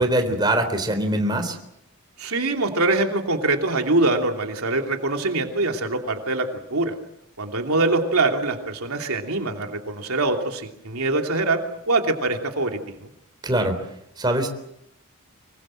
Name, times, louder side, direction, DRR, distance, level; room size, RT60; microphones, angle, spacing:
voice 1, 0.0-1.6 13.4-13.8 14.2-14.5, right 1 dB, 20° right, 6 dB, 3.8 m, -22 dB
voice 2, 2.2-6.9 7.4-13.1, right 2 dB, 85° right, 3 dB, 2.9 m, -24 dB
25.5 x 23.0 x 7.6 m, 0.77 s
head